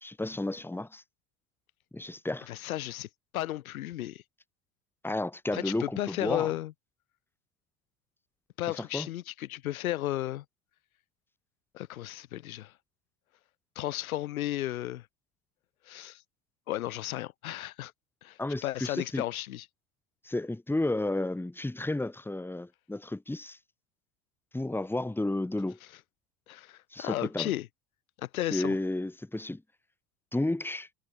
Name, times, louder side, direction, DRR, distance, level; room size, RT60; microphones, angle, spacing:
voice 1, 0.0-1.0 1.9-2.5 5.0-6.5 8.7-9.1 18.4-19.2 20.2-23.6 24.5-25.8 26.9-27.5 28.5-29.6 30.3-30.9, left 2 dB, 5° left, 1.7 m, -32 dB
voice 2, 2.5-3.1 3.3-4.2 5.5-6.7 8.6-10.4 11.7-12.7 13.8-15.1 15.9-16.2 16.7-17.9 18.2-19.7 26.5-27.7 28.2-28.8, left 14 dB, 75° left, 2.1 m, -34 dB
hypercardioid pair, 70°, 43 cm